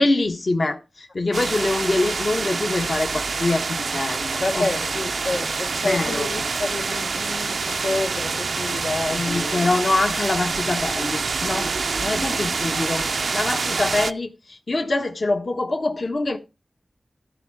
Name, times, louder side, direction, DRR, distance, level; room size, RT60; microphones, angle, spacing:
voice 1, 0.0-4.7 5.8-6.2 9.1-11.7 12.0-16.4, left 2 dB, 60° left, 1.3 m, -24 dB
sound 1, 1.3-14.1, right 4 dB, 90° right, 0.6 m, -26 dB
voice 2, 4.4-10.0, left 2 dB, 75° left, 1.4 m, -29 dB
14.0 x 4.9 x 5.9 m
wide cardioid pair, 60°, 0 cm